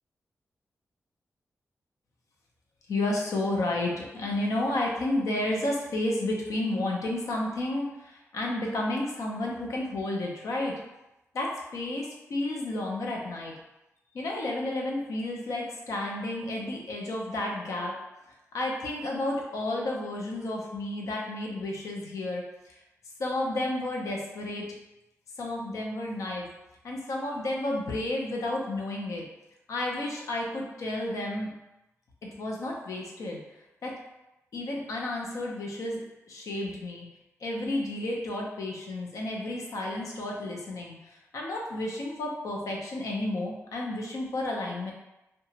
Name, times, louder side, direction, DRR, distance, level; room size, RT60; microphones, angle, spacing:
voice 1, 2.9-10.7 11.3-13.5 14.1-17.9 18.5-22.8 23.2-24.7 25.4-26.5 26.8-29.2 29.7-31.5 32.4-33.4 33.8-33.9 34.5-36.0 36.3-37.1 37.4-44.9, left 1 dB, 80° left, -1 dB, 0.6 m, -31 dB
2.8 x 2.2 x 2.8 m, 0.95 s
wide cardioid pair, 175°, 5 cm